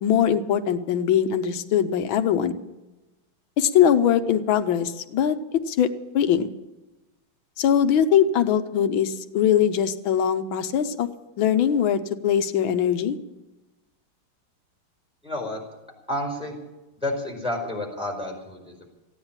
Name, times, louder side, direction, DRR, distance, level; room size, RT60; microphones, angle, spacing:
voice 1, 0.0-2.6 3.6-6.5 7.6-11.1 11.4-13.2, left 9 dB, 75° left, 10 dB, 1.6 m, -21 dB
voice 2, 15.2-15.6 16.1-16.5 17.0-18.9, left 1 dB, 5° right, -1 dB, 4.3 m, -30 dB
15.5 x 9.9 x 8.7 m, 1.1 s
omnidirectional pair, 2.3 m